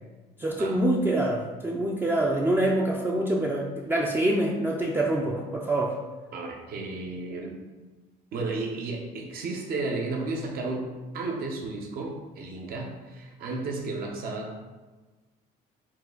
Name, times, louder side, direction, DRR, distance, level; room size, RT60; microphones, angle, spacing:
voice 1, 0.4-5.9, right 1 dB, 15° right, -2 dB, 0.4 m, -25 dB
voice 2, 6.3-7.6 8.3-14.6, right 3 dB, 65° right, 1 dB, 0.9 m, -33 dB
4.5 x 2.4 x 3.9 m, 1.3 s
cardioid pair, 110°, 17 cm